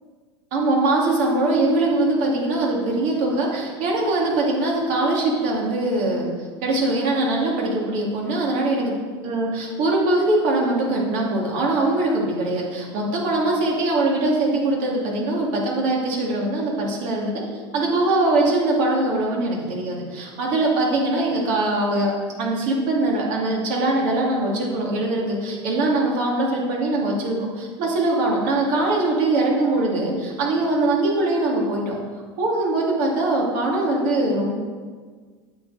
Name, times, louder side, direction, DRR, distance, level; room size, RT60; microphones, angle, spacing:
voice 1, 0.5-6.3 6.6-8.9 9.2-17.4 17.7-22.1 22.4-31.9 32.4-34.5, right 2 dB, 60° right, -2 dB, 2.5 m, -22 dB
9.0 x 7.0 x 4.1 m, 1.5 s
hypercardioid pair, 85°, 14 cm